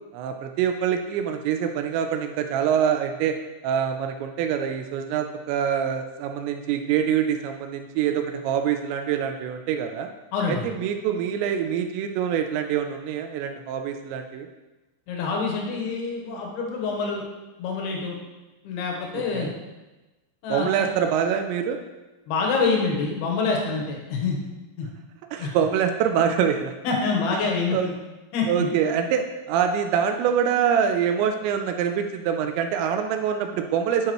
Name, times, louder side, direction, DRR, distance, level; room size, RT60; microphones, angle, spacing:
voice 1, 0.1-3.4 3.6-10.1 10.5-14.5 19.3-19.5 20.5-21.8 25.3-26.7 27.7-27.9 28.5-34.1, right 8 dB, 85° right, 6 dB, 2.6 m, -25 dB
voice 2, 10.3-10.7 15.1-17.2 17.6-18.2 18.6-19.5 20.4-20.9 22.3-24.4 24.8-24.9 25.4-25.5 26.8-27.9 28.3-28.7, left 4 dB, 70° left, 0 dB, 2.6 m, -26 dB
12.0 x 4.8 x 3.0 m, 1.1 s
omnidirectional pair, 5.5 m